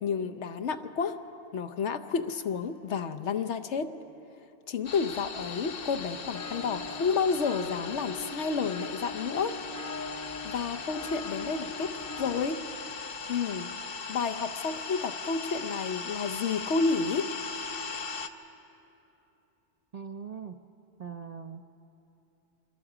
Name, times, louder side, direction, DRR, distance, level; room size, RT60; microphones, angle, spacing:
voice 1, 0.0-1.2 1.5-3.9 4.7-9.6 10.4-12.6 13.3-13.7 14.1-17.3, left 5 dB, 75° left, 10 dB, 1.1 m, -30 dB
sound 1, 4.8-18.3, left 5 dB, 55° left, 1.0 m, -39 dB
sound 2, 6.3-12.5, left 3 dB, 20° left, 0.5 m, -41 dB
voice 2, 19.9-20.6 21.0-21.6, right 6 dB, 50° right, 6 dB, 0.5 m, -40 dB
25.5 x 21.5 x 4.9 m, 2.9 s
omnidirectional pair, 1.2 m